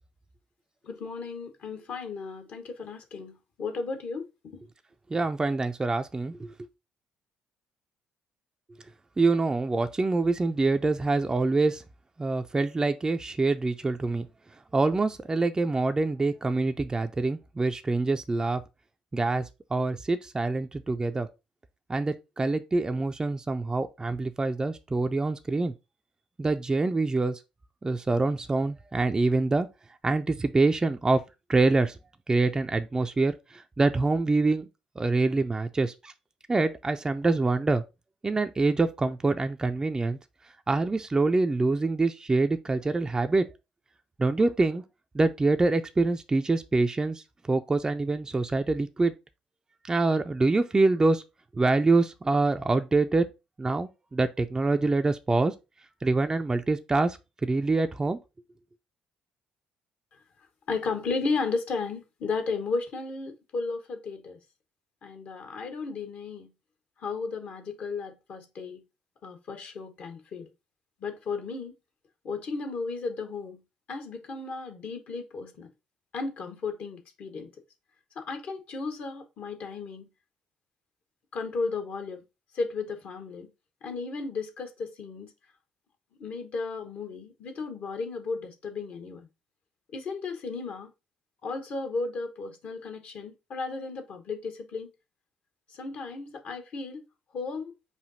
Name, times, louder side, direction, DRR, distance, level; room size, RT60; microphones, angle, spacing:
voice 1, 0.8-4.3 4.5-4.6 60.7-64.4 65.0-66.5 67.0-68.8 69.2-70.5 71.0-71.7 72.2-73.6 73.9-75.7 76.1-77.5 78.2-80.1 81.3-82.2 82.5-83.5 83.8-85.3 86.2-89.2 89.9-90.9 91.4-94.9 95.7-97.0 97.3-97.7, left 4 dB, 50° left, 1.0 m, -34 dB
voice 2, 5.1-6.5 9.2-11.8 12.2-14.3 14.7-18.6 19.1-21.3 21.9-25.7 26.4-27.4 27.8-29.7 30.0-31.2 31.5-32.0 32.3-34.7 35.0-36.1 36.5-37.8 38.2-40.2 40.7-43.5 44.2-44.8 45.1-49.1 49.9-51.2 51.5-53.3 53.6-55.5 56.0-58.2, right 3 dB, 20° right, 0.4 m, -25 dB
4.9 x 2.6 x 3.9 m
figure-of-eight pair, 45°, 3 cm